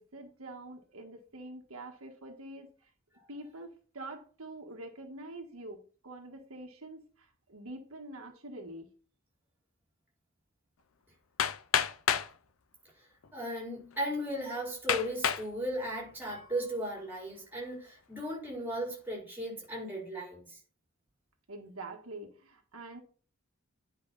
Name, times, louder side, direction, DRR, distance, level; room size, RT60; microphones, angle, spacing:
voice 1, 0.0-2.7 3.3-8.9 21.5-23.0, right 2 dB, 80° right, 1.7 m, -46 dB
Hammer, 11.4-12.3 13.2-13.3 13.9-14.0 14.9-15.5 16.1-16.5, left 8 dB, 75° left, 0.6 m, -29 dB
voice 2, 13.3-20.6, equal, 10° right, 4.6 m, -36 dB
10.0 x 5.3 x 4.1 m
head